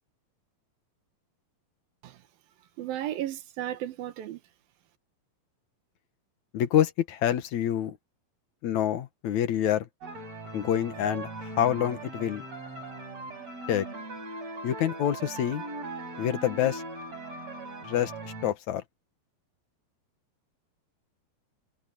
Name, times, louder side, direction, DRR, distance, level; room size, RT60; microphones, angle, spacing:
voice 1, 2.8-4.4, right 12 dB, 75° right, 3.0 m, -34 dB
voice 2, 6.5-8.0 8.6-9.9 10.5-12.4 13.7-13.9 14.6-15.6 16.2-16.8 17.9-18.8, left 10 dB, 60° left, 2.3 m, -27 dB
sound 1, 10.0-18.5, right 2 dB, 40° right, 6.9 m, -40 dB
omnidirectional pair, 4.4 m